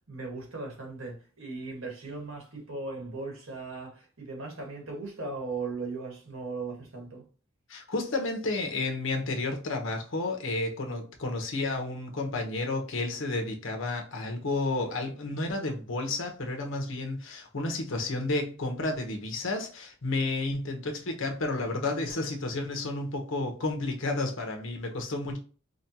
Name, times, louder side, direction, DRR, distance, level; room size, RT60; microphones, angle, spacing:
voice 1, 0.1-7.2, right 3 dB, 75° right, 1.4 m, -38 dB
voice 2, 7.7-25.4, left 2 dB, 65° left, 0.9 m, -31 dB
5.1 x 2.2 x 2.8 m
head